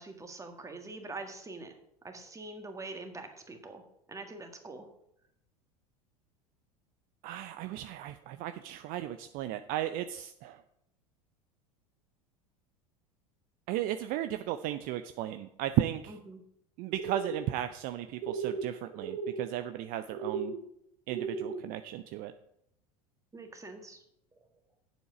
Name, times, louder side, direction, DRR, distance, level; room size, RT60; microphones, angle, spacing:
voice 1, 0.0-1.7 2.0-3.8 4.1-4.9 16.1-16.4 23.3-24.0, right 3 dB, 15° right, 5 dB, 1.7 m, -44 dB
voice 2, 7.2-10.6 13.7-16.1 16.8-20.5 21.1-22.3, right 13 dB, 50° right, 10 dB, 0.5 m, -35 dB
sound 1, 16.9-17.4 18.2-18.7 18.9-19.4 20.1-20.6 21.1-21.6, right 5 dB, 70° right, 3.0 m, -36 dB
8.1 x 7.2 x 5.0 m, 0.75 s
hypercardioid pair, 80°, 19 cm